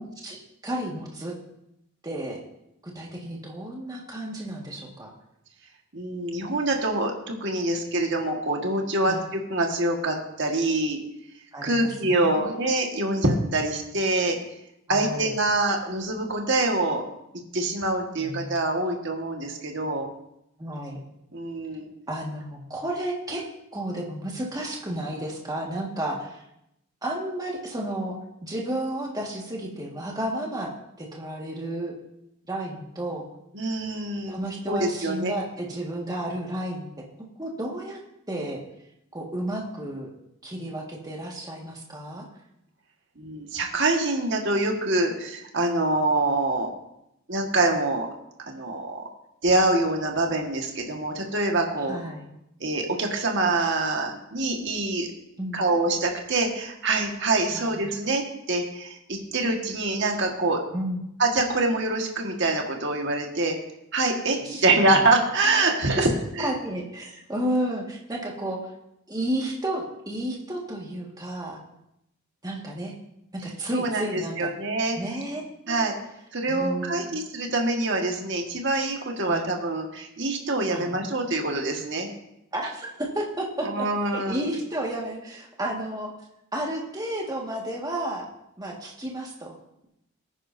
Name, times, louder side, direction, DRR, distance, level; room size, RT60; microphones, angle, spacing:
voice 1, 0.0-1.3 2.0-2.4 3.0-5.1 9.0-9.2 11.5-12.7 14.9-15.4 18.2-18.5 20.6-21.0 22.1-23.4 23.7-26.4 27.0-28.2 28.4-30.7 31.0-31.9 32.5-33.3 34.3-36.9 37.4-38.0 38.3-38.6 39.1-40.1 40.4-42.3 51.9-52.3 55.4-55.6 57.5-57.9 60.7-61.0 64.4-64.6 64.9-65.0 66.0-66.1 66.4-68.7 69.1-71.6 72.4-72.9 73.4-74.5 75.0-75.8 76.5-77.1 79.2-79.5 80.7-81.0 82.5-83.9 84.1-86.1 86.5-88.3 88.6-89.5, right 1 dB, 15° right, -2 dB, 1.8 m, -32 dB
voice 2, 5.9-11.0 11.6-14.4 14.9-17.0 17.5-20.1 21.3-21.9 33.5-34.4 34.7-35.3 43.2-46.7 47.3-48.1 48.5-49.0 49.4-52.0 52.6-55.1 55.5-60.6 61.2-63.5 63.9-66.1 66.4-66.5 73.7-75.2 75.7-75.9 76.3-82.1 83.6-84.5, right 2 dB, 55° right, 2 dB, 1.7 m, -25 dB
18.5 x 9.7 x 2.7 m, 0.81 s
head